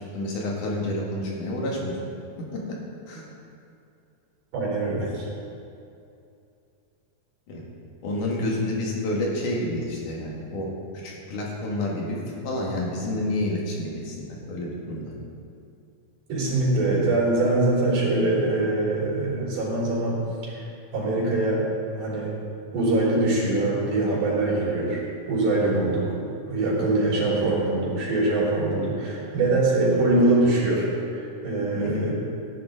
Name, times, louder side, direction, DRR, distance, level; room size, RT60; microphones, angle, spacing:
voice 1, 0.1-2.0 2.5-2.6 3.1-3.2 7.5-7.6 8.0-10.7 11.0-15.1 25.6-25.9 27.3-27.5 31.7-32.1, left 1 dB, 80° left, -3 dB, 3.5 m, -29 dB
voice 2, 4.5-5.3 16.3-20.2 20.5-20.6 20.9-21.7 21.9-22.3 22.7-26.0 26.5-32.1, right 2 dB, 85° right, -6 dB, 5.0 m, -23 dB
16.5 x 10.0 x 3.8 m, 2.6 s
omnidirectional pair, 3.5 m